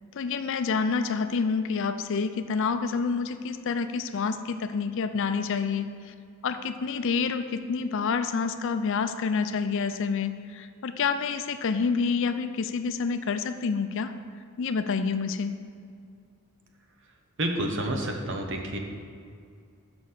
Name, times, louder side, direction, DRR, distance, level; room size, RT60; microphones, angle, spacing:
voice 1, 0.1-6.1 6.4-14.1 14.6-15.6, left 5 dB, 60° left, 9 dB, 0.4 m, -28 dB
voice 2, 17.4-18.8, right 1 dB, 55° right, 3 dB, 0.9 m, -29 dB
6.6 x 6.1 x 5.7 m, 2.3 s
head